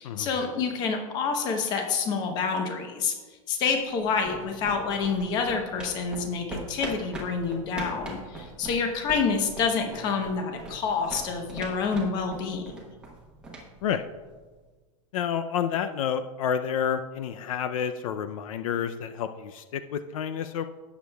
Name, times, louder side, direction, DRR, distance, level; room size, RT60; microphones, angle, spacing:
voice 1, 0.0-3.1 3.5-12.8, left 5 dB, 25° left, 4 dB, 0.9 m, -28 dB
sound 1, 3.8-14.6, right 2 dB, 5° right, 1.0 m, -42 dB
voice 2, 15.1-20.7, left 8 dB, 75° left, 9 dB, 0.5 m, -29 dB
16.5 x 7.1 x 2.3 m, 1.4 s
supercardioid pair, 180°, 18 cm